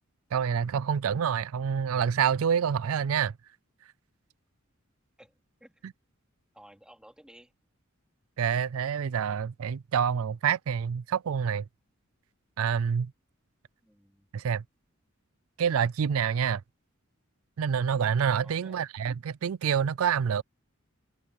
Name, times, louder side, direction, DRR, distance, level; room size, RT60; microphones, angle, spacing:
voice 1, 0.3-3.3 8.4-11.6 12.6-13.1 14.3-14.6 15.6-16.6 17.6-20.4, right 7 dB, 80° right, 0.4 m, -27 dB
voice 2, 5.2-5.8 6.5-7.5 13.8-14.3 18.3-18.9, equal, 5° right, 3.0 m, -55 dB
open air
head